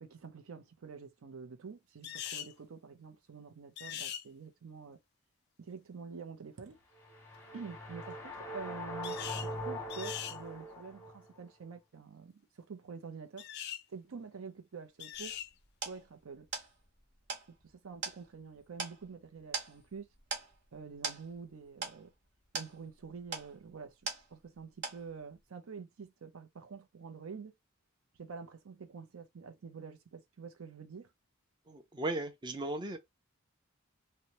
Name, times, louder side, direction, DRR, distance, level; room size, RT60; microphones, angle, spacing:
voice 1, 0.0-5.0 5.6-6.8 7.5-13.5 13.9-15.4 15.8-16.5 17.5-20.1 20.7-22.1 22.5-27.5 28.2-31.1, right 5 dB, 80° right, 0.5 m, -47 dB
sound 1, 2.0-2.5 3.8-4.2 9.0-9.5 9.9-10.4 13.4-13.8 15.0-15.5, left 10 dB, 50° left, 0.3 m, -41 dB
sound 2, 7.0-11.3, equal, 10° left, 0.8 m, -42 dB
sound 3, 15.1-24.6 24.8-25.4, right 4 dB, 55° right, 1.0 m, -42 dB
voice 2, 31.7-33.0, right 2 dB, 20° right, 0.5 m, -36 dB
2.8 x 2.1 x 2.9 m
head